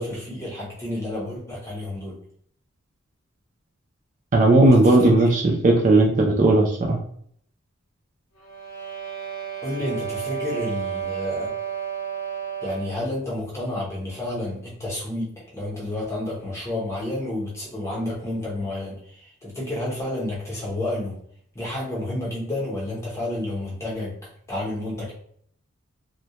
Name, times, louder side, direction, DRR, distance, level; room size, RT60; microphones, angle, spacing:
voice 1, 0.0-2.2 4.6-5.3 9.6-11.5 12.6-21.1 21.5-24.1 24.5-25.1, left 1 dB, 15° left, -5 dB, 0.7 m, -30 dB
voice 2, 4.3-7.0, right 2 dB, 35° right, -1 dB, 0.3 m, -16 dB
sound 1, 8.4-13.1, right 8 dB, 85° left, 0.5 m, -32 dB
2.2 x 2.1 x 2.7 m, 0.63 s
head